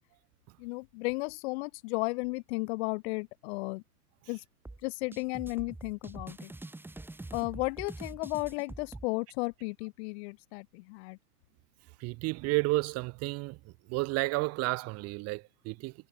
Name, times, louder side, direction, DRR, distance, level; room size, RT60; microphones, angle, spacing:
voice 1, 0.6-3.8 4.3-4.4 4.8-6.5 7.3-11.2, left 27 dB, 45° left, 3.6 m, -34 dB
sound 1, 4.7-9.1, right 2 dB, 5° right, 3.5 m, -45 dB
voice 2, 12.0-13.6 13.9-15.9, right 23 dB, 30° right, 1.6 m, -31 dB
figure-of-eight pair, 105°, 47 cm